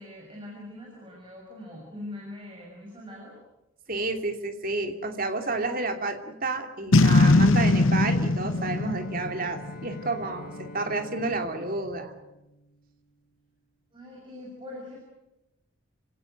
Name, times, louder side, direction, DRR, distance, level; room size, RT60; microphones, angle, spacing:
voice 1, 0.0-3.3 13.9-15.0, left 1 dB, 25° right, -2 dB, 6.7 m, -42 dB
voice 2, 3.9-12.1, right 3 dB, 40° right, 5 dB, 2.9 m, -30 dB
Boom, 6.9-10.2, left 2 dB, 70° left, 0.8 m, -21 dB
Bowed string instrument, 8.4-13.3, left 1 dB, 40° left, 1.8 m, -47 dB
29.0 x 17.5 x 9.1 m, 0.94 s
head